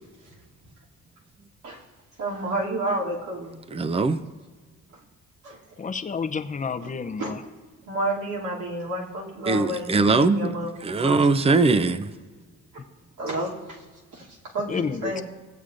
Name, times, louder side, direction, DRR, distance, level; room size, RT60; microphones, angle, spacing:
voice 1, 2.2-3.6 5.4-5.6 6.8-6.9 7.2-7.3 7.8-10.7 11.0-11.2 13.2-13.9 14.1-15.2, right 1 dB, 70° right, 2.7 m, -30 dB
voice 2, 3.7-4.2 9.4-10.5 10.8-12.1, right 3 dB, 20° right, 0.5 m, -21 dB
voice 3, 5.8-7.4 14.7-15.2, left 5 dB, 25° left, 0.6 m, -30 dB
17.0 x 8.1 x 2.5 m
cardioid pair, 90°, 30 cm